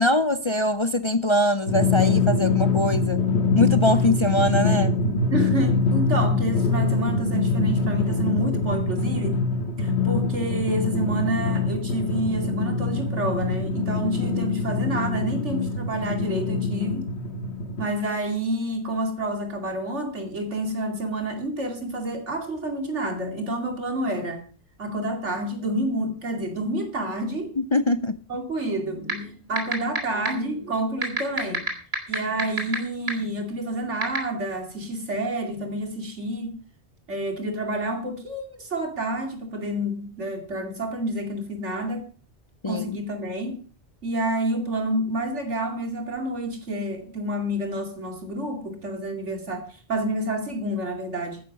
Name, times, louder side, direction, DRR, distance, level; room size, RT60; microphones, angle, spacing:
voice 1, 0.0-3.2 3.5-4.9 27.6-28.2 42.6-42.8, left 1 dB, 35° left, 0.5 m, -22 dB
Drum, 1.7-17.8, left 4 dB, 65° left, 2.0 m, -24 dB
voice 2, 5.3-9.4 9.8-17.0 17.8-24.4 24.8-27.5 28.3-31.6 32.1-36.5 37.1-42.0 42.7-43.6 44.0-51.4, right 1 dB, 85° right, 2.9 m, -29 dB
sound 1, 29.1-29.2 29.6-30.0 30.2-30.3 31.0-32.7 33.1-33.2 34.0-34.2, right 3 dB, 60° right, 3.2 m, -23 dB
13.5 x 10.5 x 5.3 m
omnidirectional pair, 1.2 m